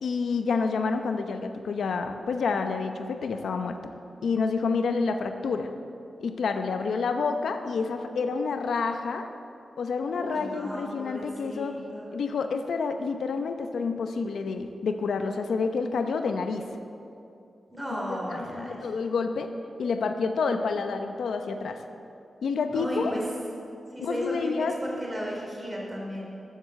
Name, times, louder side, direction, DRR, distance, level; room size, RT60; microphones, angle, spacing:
voice 1, 0.0-3.9 4.2-5.7 6.2-9.3 9.8-11.8 12.1-16.6 18.0-19.5 19.8-21.8 22.4-23.1 24.0-24.7, left 4 dB, 90° left, 7 dB, 0.8 m, -28 dB
voice 2, 10.1-12.1 17.7-18.8 22.7-23.2 23.9-24.5 24.8-26.2, equal, 10° right, -3 dB, 3.3 m, -35 dB
13.5 x 8.0 x 7.5 m, 2.6 s
wide cardioid pair, 150°, 0 cm